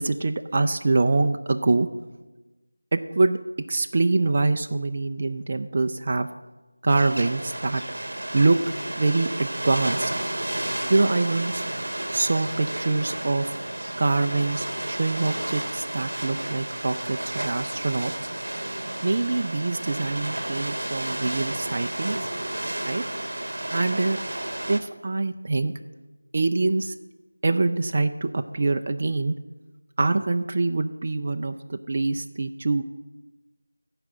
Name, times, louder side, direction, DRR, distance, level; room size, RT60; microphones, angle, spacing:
voice 1, 0.0-1.9 2.9-3.4 3.7-6.3 6.8-7.8 8.3-8.6 9.0-10.1 10.9-11.6 12.1-13.5 14.0-18.1 19.0-22.2 22.9-23.0 23.7-24.2 24.7-25.7 26.3-26.9 27.4-29.3 30.0-32.8, right 3 dB, 30° right, 6 dB, 0.4 m, -24 dB
sound 1, 6.9-24.8, right 1 dB, 55° right, 1.1 m, -32 dB
12.0 x 5.0 x 7.7 m, 1.1 s
figure-of-eight pair, 170°, 0 cm